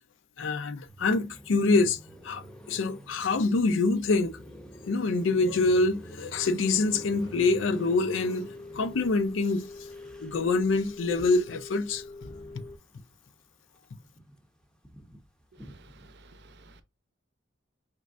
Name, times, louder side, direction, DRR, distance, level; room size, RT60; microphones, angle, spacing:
voice 1, 0.4-2.0 2.2-2.4 2.7-4.3 4.9-8.5 8.7-9.6 10.2-12.0, left 3 dB, 85° left, 0.5 m, -25 dB
Car passing by, 0.9-13.3 13.7-16.2, equal, 5° left, 0.6 m, -48 dB
sound 1, 6.4-12.8, left 2 dB, 40° left, 0.6 m, -44 dB
voice 2, 15.6-16.8, right 2 dB, 60° right, 0.6 m, -53 dB
4.6 x 3.1 x 2.5 m
head